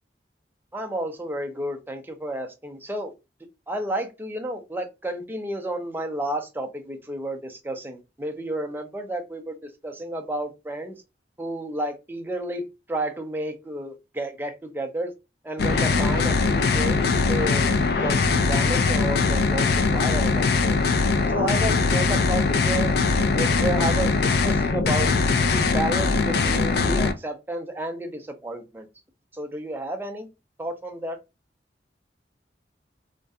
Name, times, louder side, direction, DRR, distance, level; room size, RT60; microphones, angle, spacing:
voice 1, 0.7-3.1 3.7-11.0 11.4-15.1 15.4-17.7 18.0-20.8 21.3-23.0 23.3-25.1 25.5-28.9 29.3-30.3 30.6-31.2, right 1 dB, 10° right, 0.4 m, -31 dB
sound 1, 15.6-27.1, left 4 dB, 60° left, 0.3 m, -21 dB
2.3 x 2.2 x 2.6 m
head